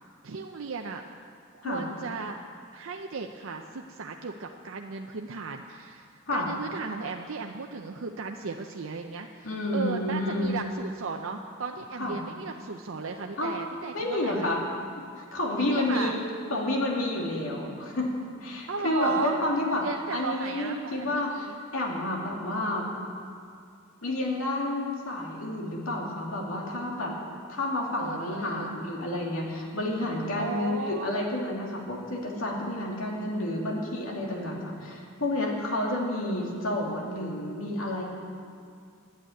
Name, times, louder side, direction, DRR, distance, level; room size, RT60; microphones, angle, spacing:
voice 1, 0.2-1.0 1.5-2.4 2.7-14.5 15.6-16.2 18.7-19.4 19.8-21.6 28.0-28.8 30.4-31.2, right 4 dB, 75° right, 3 dB, 0.6 m, -35 dB
voice 2, 9.4-10.5 12.0-12.2 13.4-13.5 13.9-14.6 15.2-16.2 16.5-18.1 18.4-22.9 24.0-27.1 27.5-38.0, left 1 dB, 85° left, -1 dB, 2.6 m, -30 dB
11.5 x 8.8 x 9.2 m, 2.3 s
head